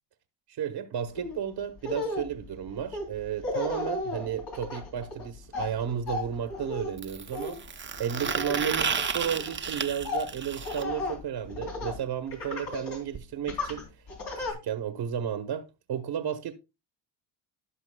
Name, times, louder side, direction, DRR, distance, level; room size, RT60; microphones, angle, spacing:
voice 1, 0.5-7.6 8.0-13.9 14.4-16.5, right 8 dB, 60° right, 1.0 m, -33 dB
Laughter, 1.2-1.4 1.8-12.0 12.3-13.0 13.5-14.5, left 2 dB, 60° left, 3.4 m, -35 dB
sound 1, 5.0-5.1 7.0-10.8 12.7-12.8 13.1-13.2 13.5-13.6 14.5-14.6, right 6 dB, 25° right, 0.7 m, -32 dB
16.5 x 5.9 x 2.2 m
cardioid pair, 90°, 45 cm